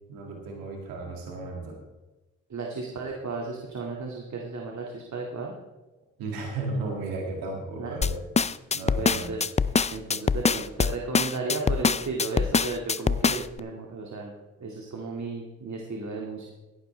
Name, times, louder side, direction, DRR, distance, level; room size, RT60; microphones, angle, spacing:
voice 1, 0.1-1.8 6.2-8.2 8.7-9.4, right 2 dB, 90° right, 0 dB, 2.2 m, -34 dB
voice 2, 2.5-5.5 7.8-8.0 8.8-9.4 9.9-14.3 14.6-16.4, right 3 dB, 55° right, -1 dB, 2.2 m, -34 dB
sound 1, 8.0-13.6, left 5 dB, 20° left, 0.4 m, -24 dB
17.0 x 11.0 x 3.3 m, 1.1 s
supercardioid pair, 45°, 34 cm